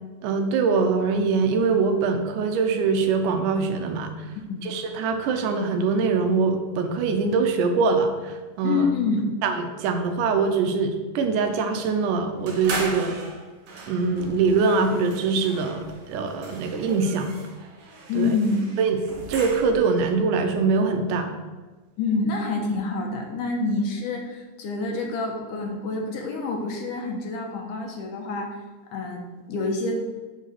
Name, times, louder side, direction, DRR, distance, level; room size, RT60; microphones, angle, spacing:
voice 1, 0.2-4.1 4.6-8.9 9.4-13.2 13.9-17.4 18.2-18.3 18.8-19.0 19.3-21.3, right 4 dB, 80° right, 6 dB, 2.3 m, -23 dB
voice 2, 8.6-9.3 18.1-18.7 22.0-28.6 28.9-30.0, left 3 dB, 80° left, 2 dB, 2.5 m, -27 dB
sound 1, 12.5-20.0, right 3 dB, 60° right, 1.8 m, -38 dB
7.4 x 3.9 x 6.5 m, 1.3 s
omnidirectional pair, 3.7 m